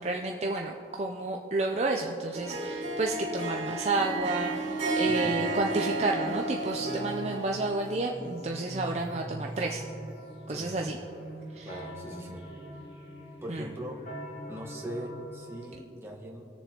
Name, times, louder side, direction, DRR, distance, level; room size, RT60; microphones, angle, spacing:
voice 1, 0.0-9.8 10.5-11.0 11.5-11.7 13.5-13.7, right 2 dB, 35° right, 1 dB, 0.5 m, -31 dB
Harp, 2.3-7.7, right 2 dB, 80° right, 1.9 m, -32 dB
sound 1, 3.9-15.2, equal, 70° left, 2.1 m, -45 dB
voice 2, 5.0-5.4 10.5-11.0 11.6-12.4 13.4-14.0 14.5-16.4, equal, 15° right, -1 dB, 1.2 m, -40 dB
sound 2, 7.3-15.8, right 1 dB, 45° left, 1.1 m, -49 dB
20.5 x 7.0 x 2.9 m, 3.0 s
head